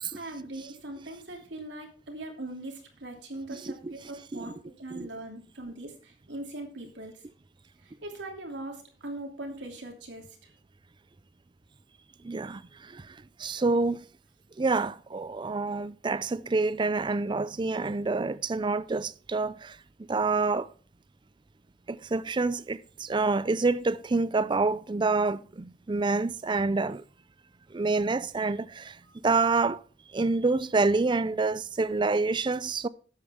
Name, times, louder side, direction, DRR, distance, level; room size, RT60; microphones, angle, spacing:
voice 1, 0.1-4.5 4.8-7.2 7.8-10.2, right 2 dB, 75° right, 2.9 m, -40 dB
voice 2, 3.5-3.9 4.3-4.5 4.9-5.1 12.2-14.0 14.6-19.8 20.1-20.7 21.9-27.0 27.7-29.0 29.2-29.8 30.1-32.9, right 3 dB, 25° right, 0.4 m, -27 dB
12.5 x 8.5 x 3.6 m
head